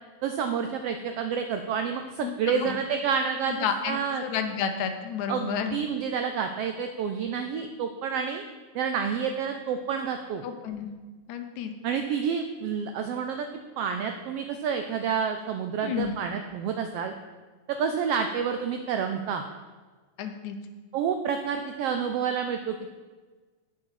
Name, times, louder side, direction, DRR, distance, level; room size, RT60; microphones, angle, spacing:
voice 1, 0.2-4.2 5.3-8.4 8.7-10.4 11.8-13.5 13.8-17.1 17.7-19.4 20.9-22.9, right 6 dB, 85° right, 6 dB, 1.3 m, -29 dB
voice 2, 2.2-2.8 3.5-5.7 10.4-10.9 11.3-11.7 15.8-16.1 20.2-20.6, left 7 dB, 80° left, 7 dB, 2.2 m, -31 dB
8.5 x 7.7 x 5.8 m, 1.4 s
omnidirectional pair, 3.4 m